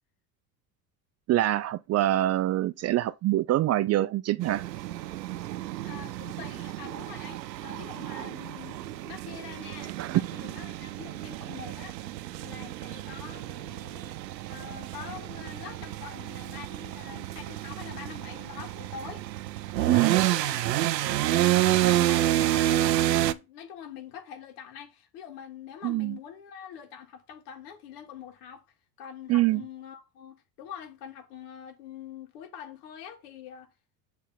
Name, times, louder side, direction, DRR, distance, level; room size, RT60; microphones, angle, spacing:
voice 1, 1.3-4.7 10.0-10.2 19.9-20.2 25.8-26.2 29.3-29.6, right 15 dB, 35° right, 0.4 m, -25 dB
sound 1, 4.4-23.3, right 14 dB, 85° right, 0.6 m, -29 dB
voice 2, 5.8-12.0 12.4-14.2 14.5-19.3 19.8-20.7 21.0-28.6 29.0-33.7, left 8 dB, 70° left, 2.0 m, -45 dB
7.1 x 3.4 x 5.9 m
hypercardioid pair, 70°, 49 cm